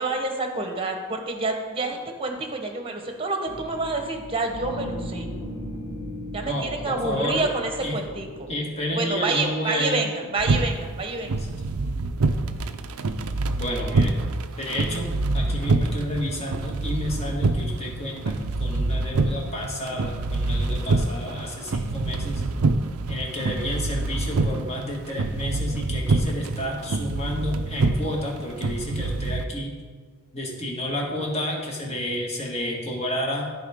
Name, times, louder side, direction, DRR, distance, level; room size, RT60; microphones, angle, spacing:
voice 1, 0.0-5.3 6.3-8.5 8.9-11.3, right 3 dB, 25° right, 4 dB, 1.0 m, -28 dB
sound 1, 3.5-9.5, equal, 90° left, 1.3 m, -37 dB
voice 2, 6.5-7.4 7.8-8.0 8.5-10.0 11.4-11.5 13.6-14.2 14.6-15.1 15.3-22.4 23.1-29.7 30.3-33.5, left 1 dB, 30° left, -1 dB, 1.6 m, -30 dB
sound 2, 10.4-29.4, right 2 dB, 90° right, 0.5 m, -26 dB
13.5 x 4.7 x 3.6 m, 1.5 s
head